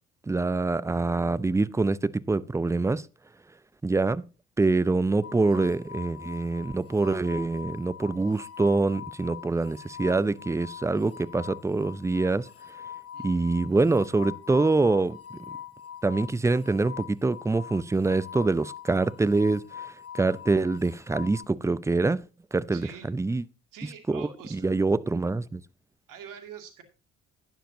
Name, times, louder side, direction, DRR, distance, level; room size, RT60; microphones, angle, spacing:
voice 1, 0.3-3.1 3.8-4.2 4.6-12.5 13.2-15.2 16.0-22.2 22.5-23.4 24.1-25.6, right 3 dB, 10° right, 0.5 m, -25 dB
sound 1, 5.2-21.5, left 9 dB, 40° left, 0.9 m, -43 dB
voice 2, 13.1-13.5 22.7-23.1 23.7-24.7 26.1-26.8, right 7 dB, 60° right, 2.4 m, -45 dB
11.5 x 10.0 x 2.7 m
hypercardioid pair, 50°, 36 cm